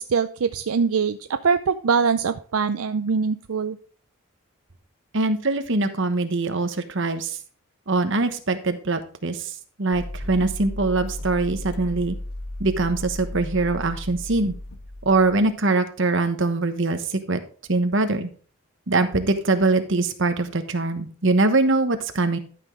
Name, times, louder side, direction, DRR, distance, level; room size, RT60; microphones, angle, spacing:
voice 1, 0.0-3.8, right 5 dB, 75° right, 10 dB, 0.5 m, -23 dB
voice 2, 5.1-7.4 7.9-9.5 9.8-12.2 12.6-14.5 15.0-17.4 17.7-18.3 18.9-22.4, right 3 dB, 55° right, 8 dB, 1.1 m, -22 dB
sound 1, 9.9-15.5, left 1 dB, 85° left, 1.3 m, -35 dB
12.5 x 6.0 x 3.7 m, 0.42 s
head